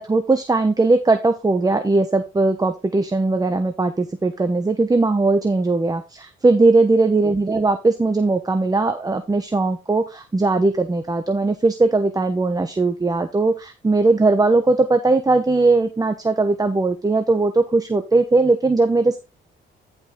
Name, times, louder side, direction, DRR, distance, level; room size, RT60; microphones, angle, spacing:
voice 1, 0.0-19.2, right 3 dB, 20° right, 8 dB, 1.1 m, -19 dB
11.0 x 5.4 x 3.8 m, 0.27 s
cardioid pair, 90°, 20 cm